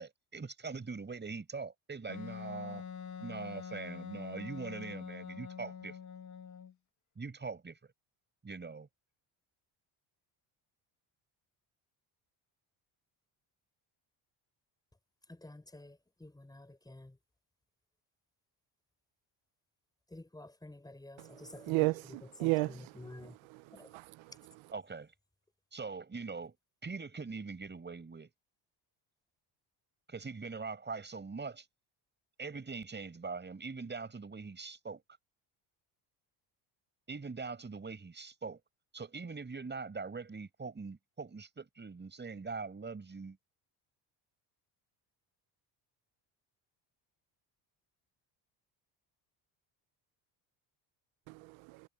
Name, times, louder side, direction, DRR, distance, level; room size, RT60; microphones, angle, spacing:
voice 1, 0.0-2.8 3.2-6.0 7.2-7.8 8.4-8.9 22.7-22.8 24.7-25.1 25.7-26.5 26.8-28.3 30.1-31.7 32.4-35.0 37.1-38.6 38.9-43.4, right 4 dB, 20° right, 6.2 m, -42 dB
Wind instrument woodwind instrument, 2.1-6.7, left 7 dB, 40° left, 1.8 m, -45 dB
voice 2, 15.3-17.1 20.1-21.9 22.4-23.4 23.7-23.9, left 1 dB, 10° left, 6.6 m, -50 dB
voice 3, 21.6-22.8 23.2-23.6 23.9-24.1 51.3-51.8, right 24 dB, 85° right, 0.6 m, -33 dB
cardioid pair, 130°, 46 cm